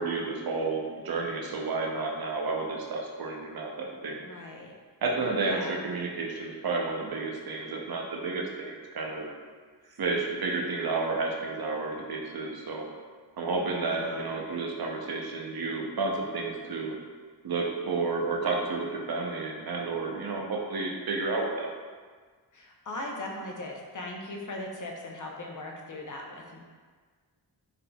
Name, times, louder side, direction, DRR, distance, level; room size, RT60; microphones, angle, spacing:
voice 1, 0.0-4.2 5.0-9.3 10.0-12.9 13.4-17.0 17.4-21.7, right 3 dB, 55° right, 0 dB, 0.7 m, -31 dB
voice 2, 4.2-4.7 5.4-5.8 13.8-14.2 22.5-26.6, left 1 dB, 45° left, 0 dB, 0.7 m, -39 dB
3.8 x 3.7 x 2.3 m, 1.5 s
cardioid pair, 45°, 45 cm